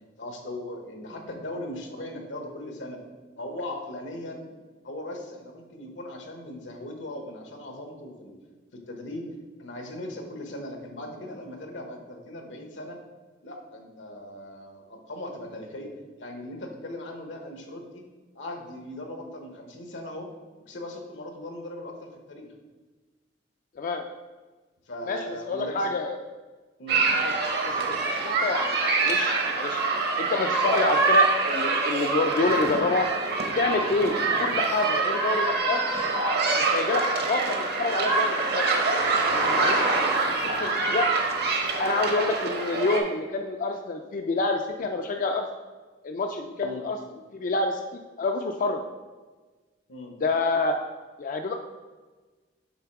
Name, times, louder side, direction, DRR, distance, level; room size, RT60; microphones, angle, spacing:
voice 1, 0.2-3.0 3.4-4.4 4.8-8.3 8.7-9.3 9.6-13.0 13.4-18.0 18.3-20.3 20.7-22.5 24.9-25.9 26.8-27.0 46.6-46.8 49.9-50.1, left 1 dB, 85° left, 3 dB, 1.1 m, -38 dB
voice 2, 25.1-26.2 27.2-27.6 27.9-29.8 30.2-33.1 33.5-35.8 36.6-38.7 39.3-39.9 40.3-41.1 41.8-45.4 46.0-47.0 47.3-47.8 48.2-48.8 50.2-50.8 51.2-51.5, left 3 dB, 45° left, 4 dB, 0.3 m, -28 dB
sound 1, 26.9-43.0, right 3 dB, 60° right, 0.9 m, -25 dB
7.0 x 3.8 x 4.6 m, 1.3 s
head